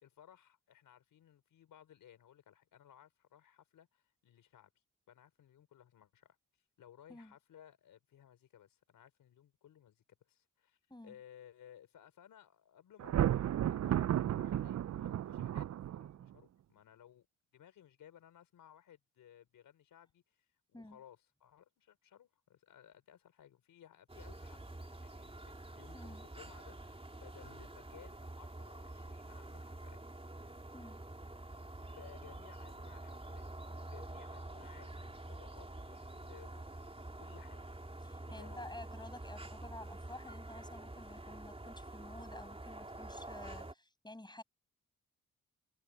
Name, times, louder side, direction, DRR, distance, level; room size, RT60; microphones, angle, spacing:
voice 1, 0.0-4.7 5.1-6.4 6.8-17.3 17.5-30.0 31.8-37.6 38.3-38.8, left 10 dB, 90° left, 4.4 m, -60 dB
Thunder, 13.0-16.3, right 11 dB, 55° right, 0.5 m, -33 dB
sound 1, 24.1-43.7, right 2 dB, 20° right, 3.6 m, -48 dB
voice 2, 25.9-26.3 30.7-31.0 38.0-44.4, left 1 dB, 15° left, 8.0 m, -51 dB
cardioid pair, 55°, 32 cm